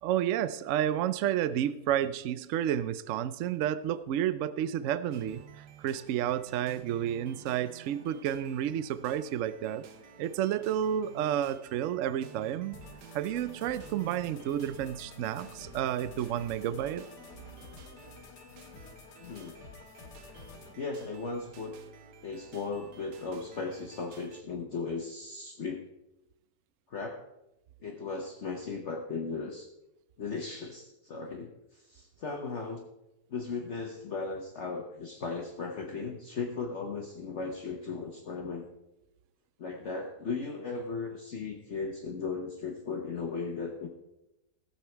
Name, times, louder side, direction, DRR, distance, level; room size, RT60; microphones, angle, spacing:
voice 1, 0.0-9.8 10.2-12.8 13.1-17.0, right 10 dB, 70° right, 15 dB, 0.8 m, -31 dB
sound 1, 5.1-24.4, right 7 dB, 85° right, 1.4 m, -53 dB
sound 2, 12.7-20.7, left 4 dB, 85° left, 1.7 m, -50 dB
voice 2, 19.2-19.6 20.8-21.7 22.2-25.8 26.9-27.2 27.8-29.7 30.2-32.9 33.3-38.7 39.6-43.9, left 4 dB, 50° left, 1 dB, 1.2 m, -37 dB
16.0 x 7.2 x 4.5 m, 0.92 s
omnidirectional pair, 1.7 m